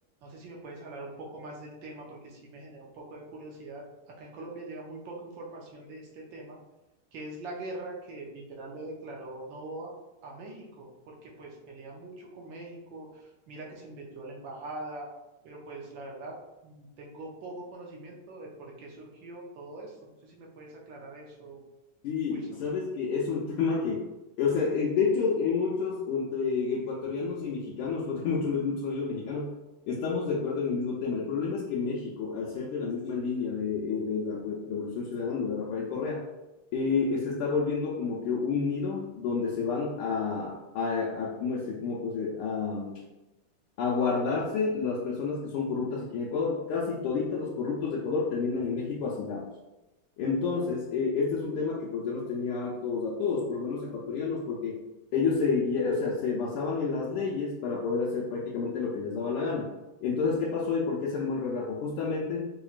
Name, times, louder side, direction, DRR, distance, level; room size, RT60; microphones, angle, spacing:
voice 1, 0.2-6.6 7.1-10.0 10.2-15.1 15.4-16.4 16.6-20.0 20.2-21.6 22.3-22.5, right 2 dB, 70° right, -1 dB, 1.3 m, -43 dB
voice 2, 22.0-24.1 24.4-29.5 29.9-36.2 36.7-43.0 43.8-49.5 50.2-54.8 55.1-59.7 60.0-62.4, left 5 dB, 90° left, -4 dB, 1.5 m, -29 dB
4.4 x 2.9 x 2.4 m, 1.0 s
omnidirectional pair, 2.4 m